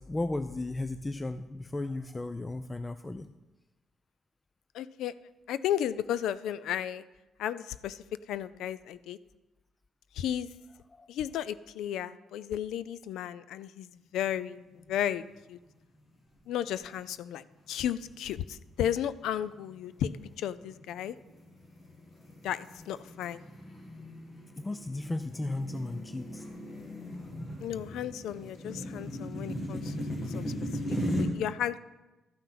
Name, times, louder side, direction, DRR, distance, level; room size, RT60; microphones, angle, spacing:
voice 1, 0.0-3.3 10.9-11.1 24.6-26.5, left 2 dB, 20° left, 11 dB, 0.4 m, -35 dB
voice 2, 4.7-5.1 5.5-7.0 7.4-9.2 10.1-10.5 11.1-15.2 15.5-15.6 16.5-21.2 22.4-23.4 27.6-30.1 30.3-30.5 31.1-31.8, left 10 dB, 85° left, 16 dB, 0.4 m, -34 dB
sound 1, 14.8-15.3 15.7-15.8 16.5-17.0 17.5-17.8 18.4-31.2, equal, 45° left, 2.2 m, -38 dB
13.0 x 5.6 x 5.9 m, 1.1 s
cardioid pair, 90°, 0 cm